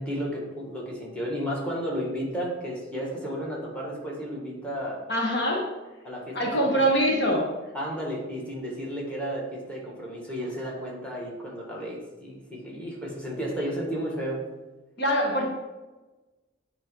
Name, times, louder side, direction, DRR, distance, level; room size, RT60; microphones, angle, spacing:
voice 1, 0.0-5.0 6.0-6.8 7.7-14.4, equal, 5° left, -3 dB, 1.7 m, -33 dB
voice 2, 5.1-5.7 6.3-7.5 15.0-15.5, equal, 60° left, -1 dB, 1.4 m, -24 dB
9.2 x 3.1 x 5.3 m, 1.2 s
head